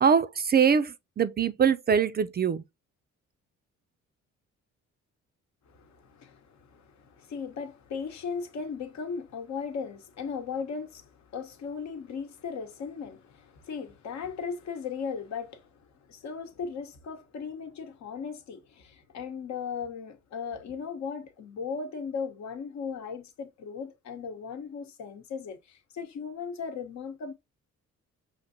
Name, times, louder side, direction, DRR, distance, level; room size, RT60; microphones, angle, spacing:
voice 1, 0.0-2.6, right 7 dB, 35° right, 0.4 m, -23 dB
voice 2, 5.7-15.8 16.1-27.3, left 6 dB, 65° left, 1.0 m, -37 dB
5.8 x 2.6 x 2.7 m
cardioid pair, 90°, 30 cm